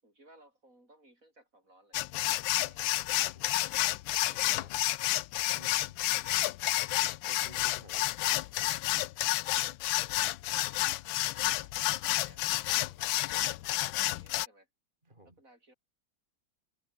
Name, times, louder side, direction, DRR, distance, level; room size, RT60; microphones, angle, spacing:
voice 1, 0.0-4.0 5.6-5.7 9.5-10.9 11.6-11.7 12.2-12.4 12.7-14.7 15.4-15.7, right 1 dB, 40° right, 8.7 m, -62 dB
sound 1, 1.9-14.5, left 16 dB, 85° left, 1.4 m, -30 dB
voice 2, 4.3-4.8 5.5-6.5 7.2-8.1 11.3-11.4 15.1-15.3, right 1 dB, 25° right, 5.4 m, -55 dB
omnidirectional pair, 2.1 m